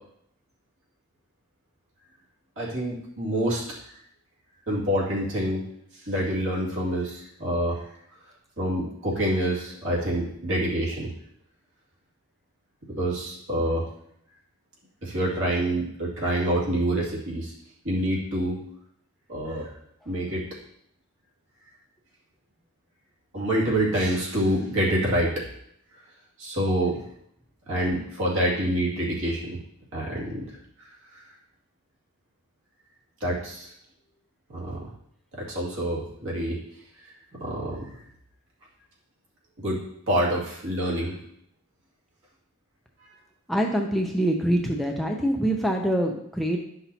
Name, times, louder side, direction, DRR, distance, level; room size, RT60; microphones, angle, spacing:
voice 1, 2.6-3.8 4.7-5.7 5.9-7.8 8.6-11.1 13.0-13.9 15.0-17.5 17.8-18.6 19.3-19.7 20.1-20.5 23.3-25.4 26.4-27.0 27.7-29.6 29.9-30.6 33.2-33.7 34.5-34.9 35.4-36.6 37.4-38.0 39.6-41.2, right 1 dB, 60° right, -5 dB, 2.3 m, -27 dB
voice 2, 43.5-46.6, right 1 dB, ahead, 0 dB, 0.5 m, -25 dB
11.0 x 5.8 x 2.8 m, 0.72 s
head